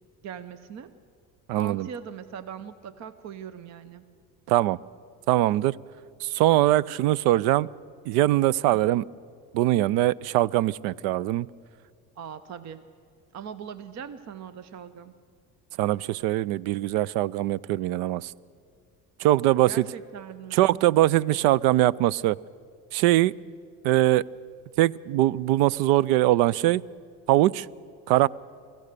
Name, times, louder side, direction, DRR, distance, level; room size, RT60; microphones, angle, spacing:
voice 1, 0.2-0.9 1.5-4.0 8.7-8.8 12.2-12.8 13.3-15.1 19.7-20.8, right 7 dB, 45° right, 13 dB, 0.8 m, -40 dB
voice 2, 1.5-1.9 4.5-4.8 5.3-5.8 6.2-7.7 8.1-9.0 9.5-11.5 15.8-18.3 19.2-19.9 20.5-22.4 22.9-23.3 23.8-24.2 24.8-26.8 27.3-27.7 28.1-28.3, right 15 dB, 75° right, 24 dB, 0.5 m, -22 dB
25.5 x 15.0 x 6.7 m, 2.2 s
supercardioid pair, 95°, 37 cm